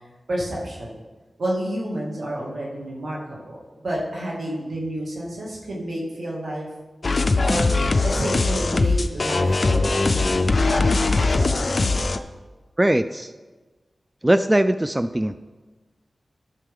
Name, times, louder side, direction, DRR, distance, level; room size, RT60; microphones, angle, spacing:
voice 1, 0.3-0.9 1.4-6.7 7.4-7.7 8.0-11.9, right 1 dB, 80° right, -4 dB, 2.3 m, -30 dB
sound 1, 7.0-12.2, left 3 dB, 55° left, 0.5 m, -20 dB
voice 2, 12.8-13.3 14.2-15.4, right 1 dB, 20° right, 11 dB, 0.3 m, -20 dB
12.0 x 6.7 x 3.7 m, 1.3 s
cardioid pair, 55°, 0 cm